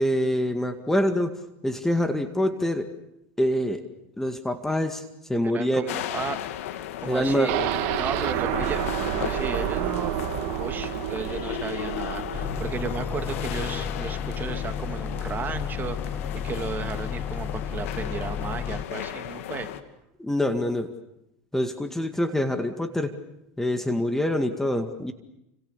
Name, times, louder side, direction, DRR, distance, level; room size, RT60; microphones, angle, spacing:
voice 1, 0.0-1.3 1.6-2.9 3.4-3.8 4.2-5.0 5.3-5.9 7.1-7.7 20.2-20.9 21.5-23.1 23.6-25.1, left 1 dB, 5° left, 7 dB, 2.1 m, -25 dB
voice 2, 5.4-6.4 7.0-7.5 8.0-10.1 10.6-19.7, right 6 dB, 25° right, 7 dB, 2.8 m, -34 dB
sound 1, 5.9-19.8, left 11 dB, 80° left, 2.3 m, -35 dB
sound 2, 7.5-15.4 15.7-15.8 16.2-16.3, right 13 dB, 65° right, 2.0 m, -30 dB
sound 3, 12.3-18.9, left 8 dB, 25° left, 1.6 m, -32 dB
29.5 x 27.5 x 6.9 m, 0.83 s
supercardioid pair, 115°, 7 cm